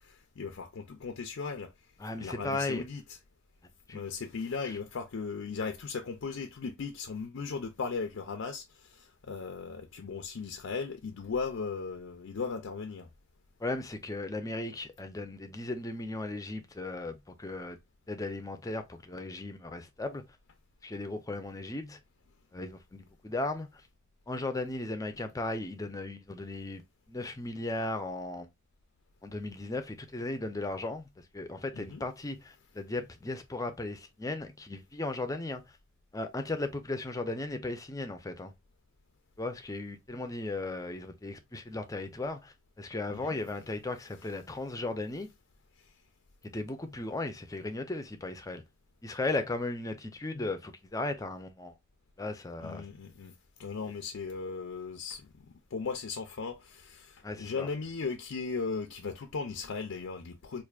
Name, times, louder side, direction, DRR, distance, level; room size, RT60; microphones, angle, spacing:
voice 1, 0.0-1.7 2.2-3.2 3.9-13.1 31.7-32.1 43.1-43.4 45.8-45.9 52.6-53.3 53.6-55.5 55.7-60.6, left 5 dB, 70° left, 0.5 m, -37 dB
voice 2, 2.0-2.8 3.9-4.0 4.7-4.8 13.6-17.8 18.1-20.2 20.8-22.0 22.5-23.8 24.3-26.8 27.1-28.5 29.2-35.6 36.1-38.5 39.4-45.3 46.4-48.6 49.0-51.7 52.2-52.9 57.2-57.7, left 2 dB, 15° left, 0.5 m, -36 dB
4.7 x 2.5 x 2.4 m
head